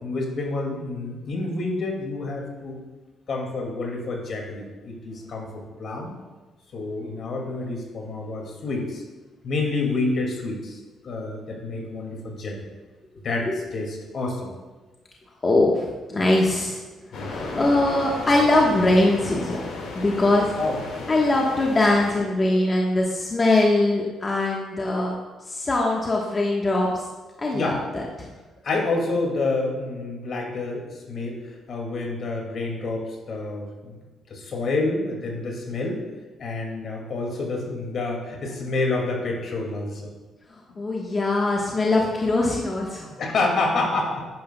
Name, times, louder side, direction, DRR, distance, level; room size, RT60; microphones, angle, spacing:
voice 1, 0.0-2.8 3.3-6.1 6.7-9.0 9.4-10.8 11.0-12.6 13.2-14.5 17.1-17.4 20.6-20.8 27.5-27.8 28.6-31.4 31.7-34.0 34.3-36.0 36.4-40.1 40.7-40.8 43.2-44.2, left 3 dB, 60° left, 0 dB, 2.2 m, -28 dB
voice 2, 15.4-16.8 17.1-19.7 19.9-20.5 21.1-25.1 25.5-26.9 27.4-28.3 40.5-43.1, left 2 dB, 30° left, -2 dB, 1.2 m, -22 dB
sound 1, 17.1-22.2, left 3 dB, 80° left, 1.9 m, -34 dB
10.0 x 9.5 x 2.3 m, 1.3 s
cardioid pair, 90°, 0 cm